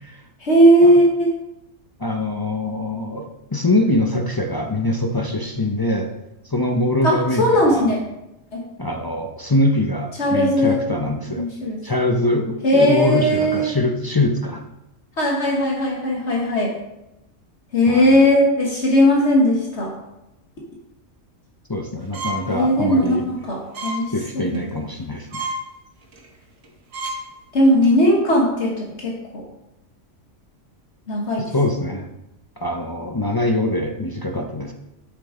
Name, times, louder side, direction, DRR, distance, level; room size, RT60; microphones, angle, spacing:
voice 1, 0.4-1.3 7.0-8.0 8.5-8.6 10.2-10.8 11.3-11.8 12.6-13.7 15.2-16.7 17.7-19.9 22.5-23.2 23.5-24.6 27.5-29.4 31.1-31.4, equal, 60° left, -2 dB, 1.6 m, -18 dB
voice 2, 2.0-6.1 6.4-7.9 8.8-11.4 11.8-14.7 17.9-18.2 21.7-23.2 24.1-25.5 31.5-32.1 32.6-34.7, left 1 dB, 30° left, 1 dB, 0.4 m, -23 dB
sound 1, 22.1-22.5 22.9-23.1 23.7-24.0 24.4-24.6 25.0-25.1 25.3-25.6 26.1-26.3 26.6-26.7 26.9-27.2 27.6-27.9, right 1 dB, 90° right, 1.6 m, -29 dB
8.3 x 6.8 x 3.7 m, 0.90 s
omnidirectional pair, 1.3 m